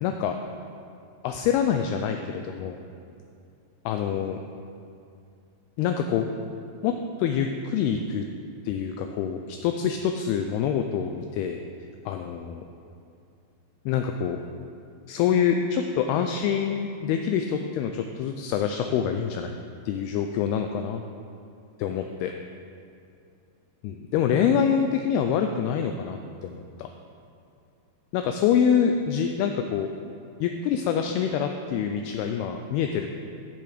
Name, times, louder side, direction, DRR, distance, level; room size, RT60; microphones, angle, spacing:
voice 1, 0.0-0.4 1.2-2.8 3.9-4.4 5.8-6.3 6.8-8.3 8.7-11.6 12.1-12.6 13.9-14.4 15.1-19.5 19.9-21.0 21.8-22.3 23.8-26.9 28.1-29.9 30.4-33.1, left 8 dB, 85° left, 5 dB, 2.3 m, -26 dB
13.0 x 6.9 x 5.0 m, 2.5 s
omnidirectional pair, 5.0 m